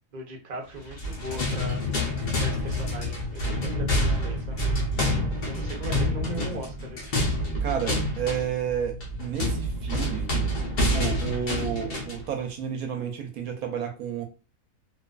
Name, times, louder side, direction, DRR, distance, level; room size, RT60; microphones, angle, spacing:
voice 1, 0.1-2.0 2.4-4.6 5.5-7.4, right 1 dB, 50° right, 0.5 m, -39 dB
sound 1, 0.8-12.3, left 1 dB, 60° left, 0.5 m, -27 dB
voice 2, 7.6-10.3 10.9-14.2, right 8 dB, 70° right, 1.0 m, -31 dB
2.5 x 2.4 x 2.2 m
omnidirectional pair, 1.6 m